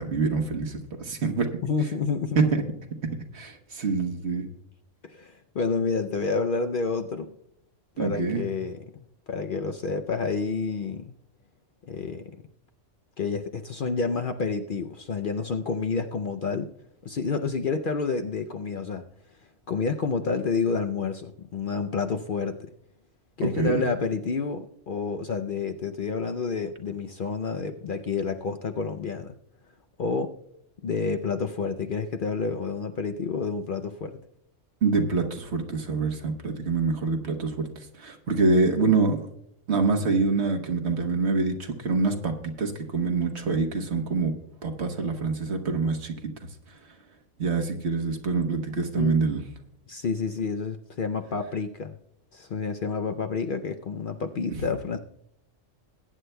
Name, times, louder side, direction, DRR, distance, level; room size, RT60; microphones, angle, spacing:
voice 1, 0.0-1.5 2.4-2.6 3.3-4.5 8.0-8.4 23.4-23.8 34.8-37.7 38.0-39.3 39.7-44.3 44.6-46.3 47.4-49.4 54.5-54.7, right 4 dB, 60° right, 5 dB, 1.4 m, -25 dB
voice 2, 1.6-2.4 5.0-7.4 8.0-11.1 11.9-12.4 13.2-16.7 17.0-19.0 19.7-22.7 23.4-29.3 30.0-30.3 30.8-34.1 48.9-49.2 49.9-52.0 52.3-55.0, left 4 dB, 55° left, 6 dB, 0.7 m, -29 dB
21.5 x 9.4 x 2.2 m, 0.72 s
omnidirectional pair, 1.3 m